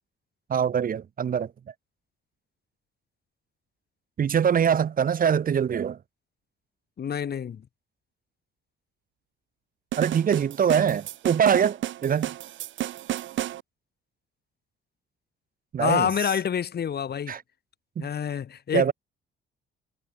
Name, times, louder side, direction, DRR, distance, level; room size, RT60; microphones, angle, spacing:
voice 1, 0.5-1.5 4.2-6.0 10.0-12.3 15.7-16.1 17.3-17.4 18.0-18.1 18.7-18.9, right 8 dB, 45° right, 0.9 m, -23 dB
voice 2, 7.0-7.6 15.8-17.3 18.0-18.9, left 8 dB, 55° left, 3.5 m, -27 dB
sound 1, 9.9-13.6, right 13 dB, 70° right, 1.1 m, -32 dB
cardioid pair, 90°, 20 cm